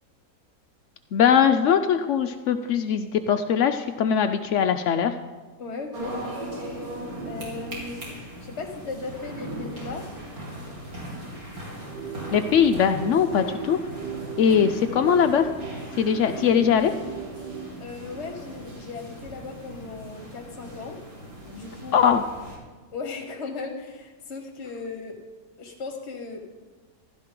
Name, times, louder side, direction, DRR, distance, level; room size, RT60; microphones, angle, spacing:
voice 1, 1.1-5.1 12.3-13.8 14.4-15.5 16.0-16.9 21.9-22.2, left 8 dB, 80° left, 8 dB, 0.6 m, -21 dB
voice 2, 5.6-6.1 7.2-8.0 8.4-10.0 17.8-21.0 21.4-22.1 22.9-25.2 25.6-26.6, left 4 dB, 45° left, 4 dB, 1.2 m, -36 dB
sound 1, 5.9-22.6, right 1 dB, 50° right, 3.5 m, -39 dB
sound 2, 11.8-17.8, right 7 dB, 75° right, 1.4 m, -37 dB
15.5 x 12.5 x 3.8 m, 1.4 s
omnidirectional pair, 1.9 m